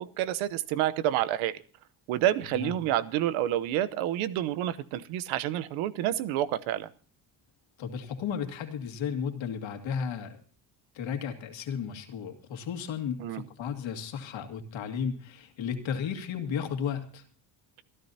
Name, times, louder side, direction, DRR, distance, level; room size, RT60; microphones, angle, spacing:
voice 1, 0.0-1.6 2.1-6.9 13.2-13.4, right 12 dB, 85° right, 15 dB, 1.0 m, -29 dB
voice 2, 7.8-10.4 10.9-17.2, left 7 dB, 70° left, 5 dB, 2.4 m, -34 dB
28.0 x 11.0 x 2.8 m, 0.40 s
supercardioid pair, 70°, 47 cm